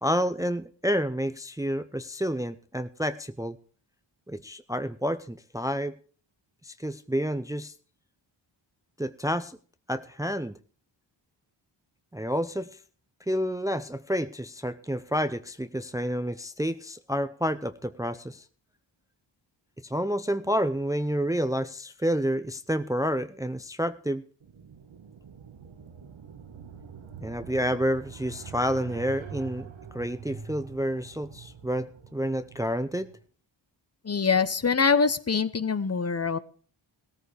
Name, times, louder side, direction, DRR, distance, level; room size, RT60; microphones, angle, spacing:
voice 1, 0.0-3.6 4.3-6.0 6.6-7.7 9.0-9.6 9.9-10.6 12.1-12.7 13.3-18.4 19.8-24.2 27.2-29.7 29.9-33.1, equal, 5° right, 11 dB, 0.6 m, -29 dB
sound 1, 24.4-33.2, right 6 dB, 80° right, 1.5 m, -45 dB
voice 2, 34.0-36.4, left 5 dB, 35° left, 14 dB, 0.8 m, -24 dB
17.0 x 14.0 x 3.4 m, 0.41 s
wide cardioid pair, 80°, 46 cm